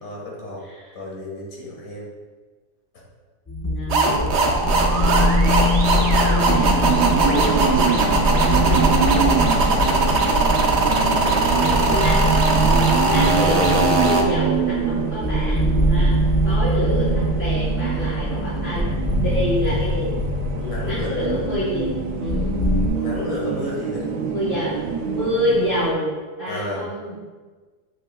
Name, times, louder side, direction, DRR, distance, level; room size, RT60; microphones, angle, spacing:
voice 1, 0.0-0.7 1.0-2.1 7.2-7.6 11.1-12.1 20.6-21.2 22.9-24.2 26.5-26.9, left 1 dB, 60° left, -3 dB, 1.9 m, -32 dB
sound 1, 3.5-22.9, equal, 15° left, 0.5 m, -23 dB
voice 2, 3.6-6.8 8.3-9.0 11.9-12.3 13.0-16.2 16.4-17.1 17.3-18.9 19.2-20.1 20.8-21.9 22.2-22.5 24.2-27.2, equal, 35° left, -11 dB, 2.0 m, -27 dB
sound 2, 3.9-14.2, right 2 dB, 55° right, 0.8 m, -20 dB
sound 3, 6.5-25.9, right 6 dB, 70° right, 1.1 m, -26 dB
7.5 x 5.6 x 2.3 m, 1.4 s
omnidirectional pair, 1.7 m